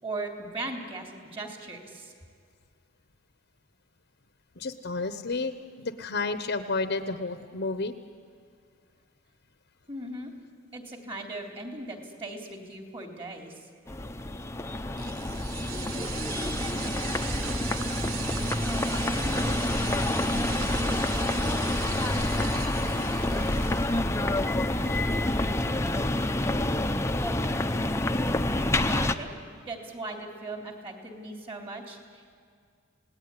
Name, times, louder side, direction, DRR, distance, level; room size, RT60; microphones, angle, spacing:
voice 1, 0.0-2.1 9.9-10.3 10.7-13.5 28.7-32.3, right 2 dB, 30° right, 2 dB, 3.5 m, -38 dB
voice 2, 4.6-7.9, left 3 dB, 55° left, 9 dB, 1.0 m, -31 dB
sound 1, 13.9-29.2, left 1 dB, 15° left, 0.8 m, -28 dB
sound 2, 15.0-24.1, right 6 dB, 75° right, 1.1 m, -38 dB
28.5 x 18.5 x 9.9 m, 2.2 s
head